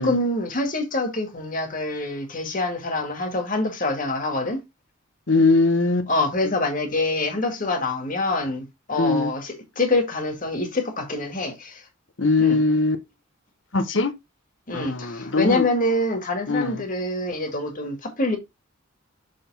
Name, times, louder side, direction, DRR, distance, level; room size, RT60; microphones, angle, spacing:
voice 1, 0.0-4.6 6.1-11.8 12.4-12.6 14.7-18.4, left 2 dB, 40° left, 1.9 m, -25 dB
voice 2, 5.3-6.1 6.4-6.5 9.0-9.3 12.2-13.0 13.7-14.1 14.7-15.7 16.5-16.8, left 3 dB, 65° left, 1.1 m, -21 dB
6.8 x 3.7 x 5.4 m
head